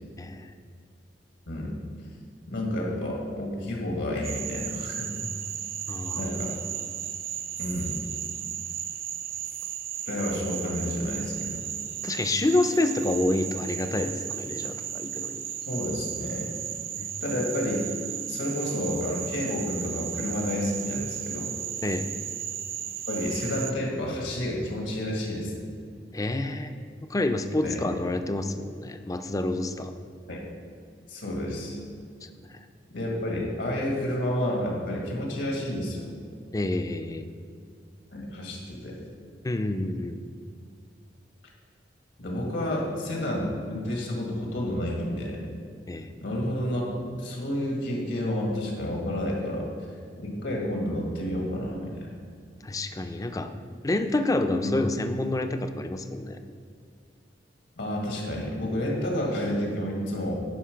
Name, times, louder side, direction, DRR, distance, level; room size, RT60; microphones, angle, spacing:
voice 1, 0.2-0.5 5.9-6.4 12.0-15.4 17.0-17.1 21.8-22.1 26.1-26.8 27.1-29.9 32.2-32.3 36.5-37.3 39.4-40.2 45.9-46.1 52.6-53.5 53.8-56.4, left 2 dB, 20° left, 8 dB, 0.4 m, -28 dB
voice 2, 1.5-1.8 2.5-5.2 6.1-6.6 7.6-8.0 10.1-11.7 15.7-16.5 17.2-17.8 18.3-21.5 23.1-25.7 27.6-27.8 30.3-30.4 31.1-31.8 32.9-36.1 38.1-39.0 42.2-45.4 46.2-49.7 50.2-52.1 54.6-54.8 57.8-60.4, left 1 dB, 80° left, -1 dB, 1.8 m, -30 dB
Frog, 4.2-23.7, right 10 dB, 55° right, 0.5 m, -35 dB
10.5 x 5.1 x 5.1 m, 2.2 s
head